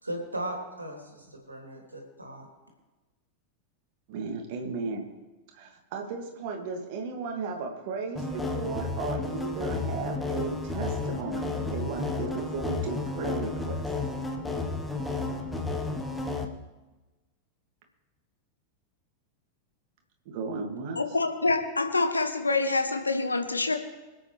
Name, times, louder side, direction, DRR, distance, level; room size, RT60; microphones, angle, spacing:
voice 1, 0.0-2.5, right 1 dB, 80° right, 1 dB, 3.1 m, -37 dB
voice 2, 4.1-5.1 5.5-13.8 20.3-21.0, right 4 dB, 50° right, 2 dB, 2.4 m, -35 dB
sound 1, 8.2-16.5, left 3 dB, 5° left, 1.3 m, -32 dB
voice 3, 20.9-23.8, left 3 dB, 80° left, 6 dB, 1.3 m, -26 dB
25.5 x 8.5 x 3.4 m, 1.1 s
figure-of-eight pair, 90°, 0 cm